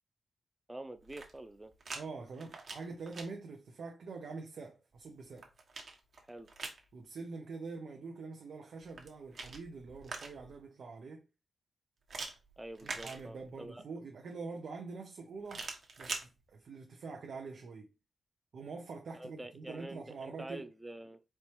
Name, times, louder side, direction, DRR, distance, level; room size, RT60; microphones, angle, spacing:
voice 1, 0.7-1.7 6.3-6.5 12.6-13.8 19.1-21.2, right 1 dB, 10° right, 0.5 m, -46 dB
sound 1, 1.0-2.0 2.3-3.3 5.0-6.8 8.8-10.6 12.1-13.7 15.4-16.3, right 3 dB, 55° right, 1.1 m, -44 dB
voice 2, 1.9-5.5 6.9-11.3 12.8-15.7 16.0-17.9 18.5-20.6, right 4 dB, 75° right, 0.6 m, -45 dB
4.4 x 3.0 x 3.1 m
wide cardioid pair, 105°, 0 cm